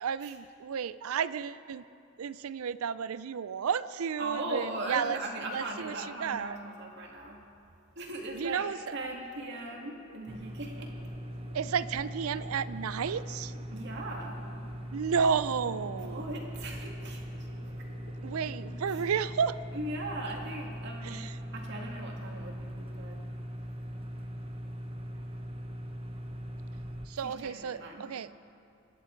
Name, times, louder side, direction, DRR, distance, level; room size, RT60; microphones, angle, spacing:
voice 1, 0.0-1.8 2.2-5.2 5.5-6.6 8.3-9.0 11.5-13.5 14.9-16.2 18.2-19.6 21.0-21.4 27.1-28.3, right 6 dB, 85° right, 16 dB, 0.5 m, -32 dB
voice 2, 4.2-7.4 8.0-10.9 13.7-14.5 15.9-17.2 18.9-19.0 19.7-23.2 27.2-28.1, right 2 dB, 55° right, 0 dB, 2.2 m, -39 dB
sound 1, 9.4-19.3, left 1 dB, 85° left, 2.3 m, -56 dB
sound 2, 10.3-27.1, equal, 25° right, 1.0 m, -40 dB
24.5 x 11.0 x 4.6 m, 2.5 s
head